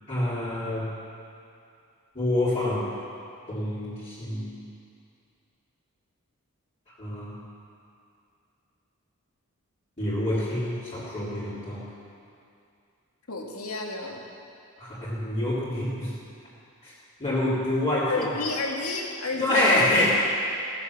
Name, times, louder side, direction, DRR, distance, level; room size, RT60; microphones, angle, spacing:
voice 1, 0.1-0.9 2.2-2.9 3.5-4.6 7.0-7.4 10.0-11.9 14.8-16.1 16.8-16.9 17.2-18.3 19.4-20.1, left 1 dB, 30° left, -11 dB, 3.4 m, -26 dB
voice 2, 13.3-14.2 18.1-19.6, left 3 dB, 85° left, 0 dB, 2.0 m, -31 dB
16.5 x 7.6 x 7.2 m, 2.5 s
head